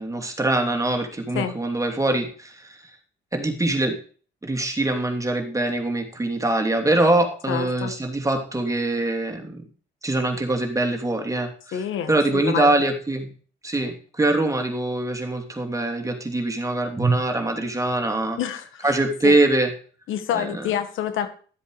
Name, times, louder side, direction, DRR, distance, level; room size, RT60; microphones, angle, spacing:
voice 1, 0.0-2.8 3.3-4.0 4.4-9.6 10.0-11.5 12.1-13.3 13.6-18.4 18.8-19.7 20.3-20.4, right 2 dB, 15° right, 4 dB, 3.0 m, -23 dB
voice 2, 7.5-7.9 11.7-12.7 18.4-19.0 19.2-19.4 20.1-21.3, left 9 dB, 85° left, 9 dB, 1.7 m, -27 dB
13.0 x 7.9 x 5.0 m, 0.41 s
cardioid pair, 90°, 20 cm